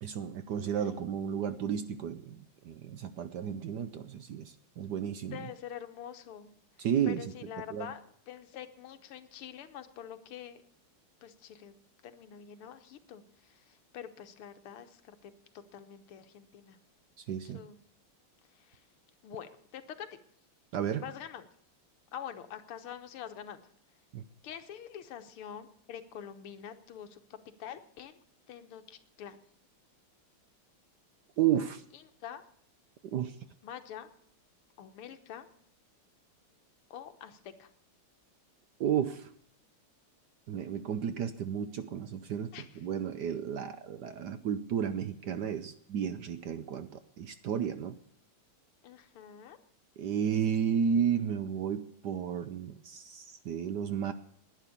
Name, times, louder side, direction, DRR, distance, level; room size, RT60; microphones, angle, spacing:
voice 1, 0.0-5.5 6.8-7.3 7.7-7.9 17.3-17.6 20.7-21.0 24.1-24.2 31.4-31.8 33.1-33.3 38.8-39.3 40.5-46.9 47.2-48.0 50.0-54.1, right 8 dB, 65° right, 11 dB, 1.1 m, -32 dB
voice 2, 5.3-6.5 7.0-8.0 8.3-10.6 11.2-11.8 12.0-13.6 13.9-15.3 15.7-16.8 17.5-17.8 18.7-18.8 19.2-20.1 21.0-21.5 22.1-23.6 24.4-27.2 27.6-28.2 28.5-29.4 32.2-32.4 33.6-34.1 34.8-35.5 36.9-37.7 42.5-42.7 48.8-49.6, left 9 dB, 85° left, 9 dB, 2.0 m, -45 dB
11.0 x 9.9 x 8.6 m, 0.64 s
omnidirectional pair, 2.4 m